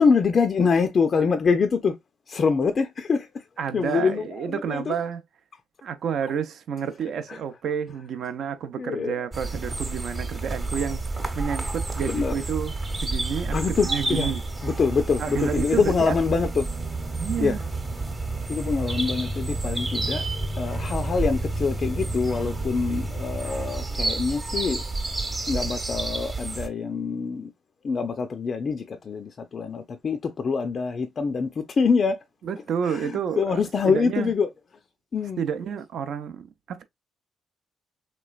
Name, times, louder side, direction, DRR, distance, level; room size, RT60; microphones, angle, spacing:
voice 1, 0.0-2.0 2.3-3.4 3.7-4.9 7.3-7.4 8.8-9.2 12.0-12.3 13.5-14.3 14.6-16.7 17.4-17.6 18.5-20.2 20.6-24.8 25.5-27.5 27.8-32.2 32.9-34.5 35.1-35.4, left 5 dB, 45° left, 0.4 m, -25 dB
voice 2, 3.6-5.2 5.8-11.0 11.3-12.7 13.0-14.4 15.2-16.2 17.2-17.6 32.4-34.3 35.4-36.8, right 7 dB, 70° right, 0.6 m, -30 dB
sound 1, 9.3-26.7, right 2 dB, 25° right, 0.9 m, -30 dB
3.3 x 3.0 x 2.3 m
cardioid pair, 90°, 0 cm